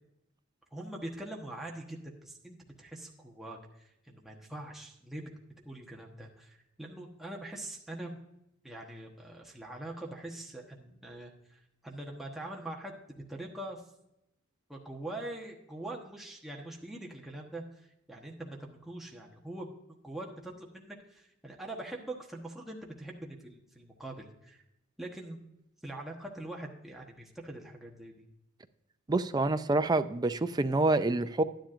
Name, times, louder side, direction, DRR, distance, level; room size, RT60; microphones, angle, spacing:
voice 1, 0.7-5.3 5.6-8.2 8.6-12.9 13.3-13.8 14.7-17.8 18.1-19.7 20.0-24.6 25.0-25.4 25.8-28.1, right 1 dB, ahead, -2 dB, 1.1 m, -43 dB
voice 2, 29.1-31.4, right 2 dB, 20° right, 10 dB, 0.4 m, -27 dB
11.5 x 10.5 x 2.5 m, 0.85 s
head